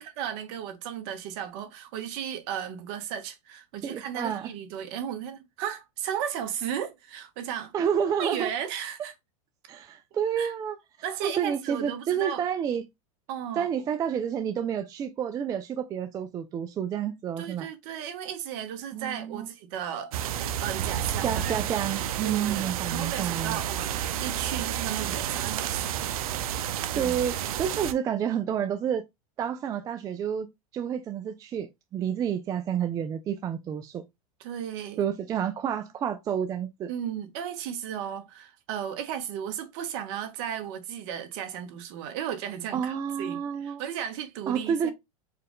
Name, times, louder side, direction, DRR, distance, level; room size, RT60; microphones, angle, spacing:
voice 1, 0.0-7.7 8.2-9.1 10.4-10.5 11.0-12.4 13.3-13.7 17.4-20.1 20.6-21.5 22.2-26.0 26.9-27.1 34.4-35.0 36.9-44.9, right 9 dB, 55° right, 1.1 m, -35 dB
voice 2, 3.8-4.5 7.7-8.5 9.7-10.8 11.2-12.9 13.6-17.7 18.9-19.5 21.2-23.6 27.0-29.0 29.4-30.5 30.7-34.0 35.0-36.9 42.7-43.8 44.5-44.9, right 8 dB, 20° right, 0.3 m, -29 dB
sound 1, 20.1-27.9, right 10 dB, 80° right, 0.5 m, -31 dB
4.5 x 2.4 x 3.5 m
supercardioid pair, 135°, 18 cm